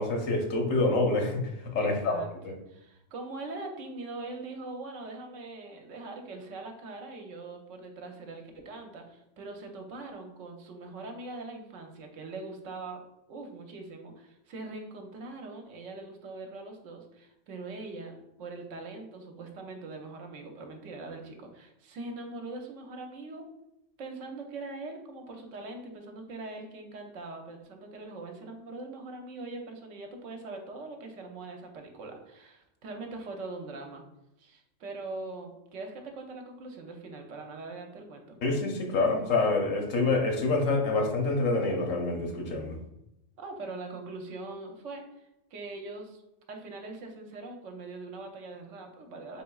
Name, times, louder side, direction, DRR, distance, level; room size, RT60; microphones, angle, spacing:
voice 1, 0.0-2.2 2.4-2.6 38.4-42.8, left 3 dB, 85° left, 2 dB, 1.2 m, -27 dB
voice 2, 1.8-2.3 2.7-13.0 13.3-23.5 24.0-34.0 34.4-38.4 43.4-46.2 46.5-49.4, right 3 dB, 75° right, 3 dB, 1.0 m, -42 dB
4.3 x 3.7 x 2.3 m, 0.87 s
omnidirectional pair, 1.3 m